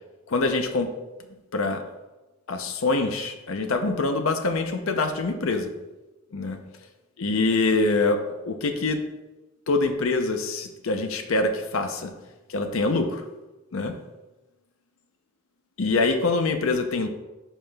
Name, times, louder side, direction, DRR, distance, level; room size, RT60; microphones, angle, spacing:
voice 1, 0.3-0.9 1.5-1.8 2.5-5.7 6.3-6.6 7.2-9.0 9.7-12.1 12.5-13.2 13.7-13.9 15.8-17.1, left 3 dB, 65° left, 6 dB, 0.6 m, -24 dB
10.0 x 5.6 x 2.3 m, 1.1 s
head